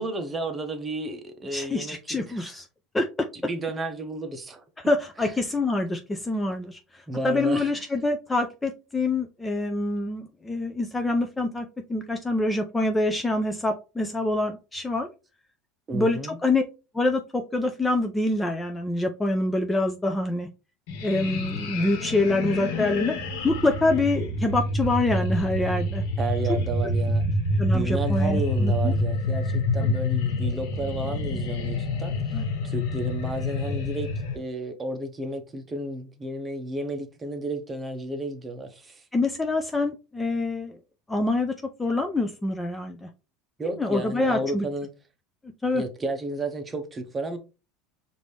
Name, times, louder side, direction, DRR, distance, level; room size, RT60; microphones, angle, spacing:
voice 1, 0.0-2.6 3.4-4.6 5.2-5.3 7.1-7.9 15.9-16.4 26.2-27.2 27.7-34.1 34.3-39.0 43.6-44.9 45.7-47.4, right 2 dB, 20° right, 0.8 m, -32 dB
voice 2, 1.5-2.6 2.9-3.1 4.9-6.8 7.2-15.1 15.9-16.6 16.9-20.5 21.0-23.1 23.4-26.0 27.6-28.9 29.8-29.9 32.3-32.4 39.1-40.8 41.1-41.5 41.8-43.1 43.8-44.7 45.6-45.8, left 2 dB, 10° left, 0.5 m, -25 dB
sound 1, 20.9-34.4, left 1 dB, 80° left, 1.1 m, -27 dB
5.1 x 2.6 x 3.2 m
supercardioid pair, 125°, 0 cm